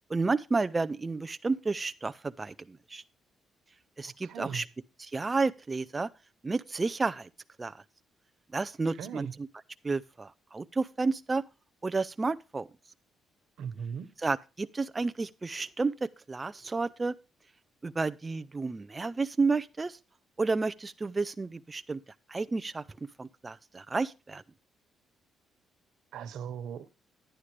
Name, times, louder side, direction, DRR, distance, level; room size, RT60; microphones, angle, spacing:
voice 1, 0.1-3.0 4.0-4.6 5.0-6.1 6.4-7.3 7.6-7.8 8.5-9.5 9.8-11.4 11.8-12.7 14.2-17.2 17.8-20.0 20.4-22.0 22.3-22.8 23.2-24.4, right 3 dB, 25° right, 0.5 m, -31 dB
voice 2, 4.0-4.6 8.9-9.3 13.6-14.1 26.1-26.9, right 7 dB, 80° right, 1.3 m, -38 dB
11.0 x 10.0 x 3.3 m
cardioid pair, 90°, 0 cm